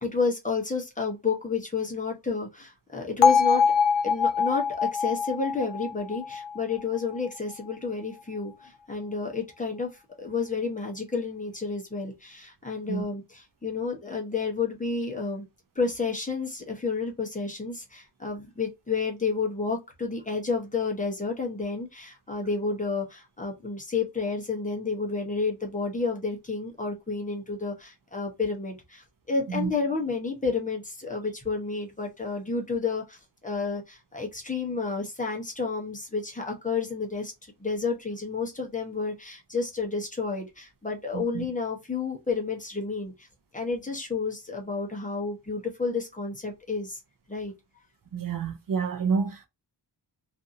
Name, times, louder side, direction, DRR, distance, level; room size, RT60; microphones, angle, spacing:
voice 1, 0.0-3.6 4.0-15.5 15.7-43.3 43.5-47.0 47.3-47.5, left 4 dB, 20° left, 0.8 m, -31 dB
Bell, 3.2-7.3, left 6 dB, 75° left, 0.6 m, -24 dB
voice 2, 41.1-41.5 48.1-49.5, right 5 dB, 50° right, 0.5 m, -28 dB
2.5 x 2.5 x 2.6 m
wide cardioid pair, 155°, 44 cm